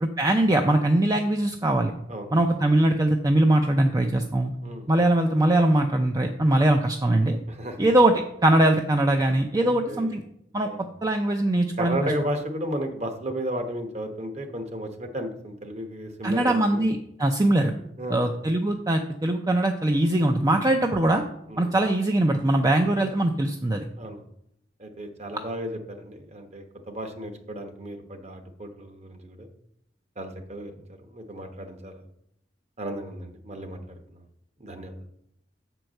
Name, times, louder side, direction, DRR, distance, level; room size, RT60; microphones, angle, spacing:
voice 1, 0.0-1.9 2.3-4.5 4.9-7.4 7.8-10.2 10.5-10.7 11.0-12.1 16.2-17.7 18.1-21.2 21.6-23.9, right 1 dB, 20° right, 4 dB, 0.5 m, -22 dB
voice 2, 7.5-7.8 9.6-10.1 10.6-10.8 11.8-16.8 18.0-18.3 21.5-21.7 24.0-24.2 24.8-29.5 30.2-30.7 31.1-32.0 32.8-34.2 34.6-34.9, right 1 dB, 40° right, 5 dB, 1.1 m, -34 dB
7.9 x 4.6 x 6.4 m, 0.77 s
head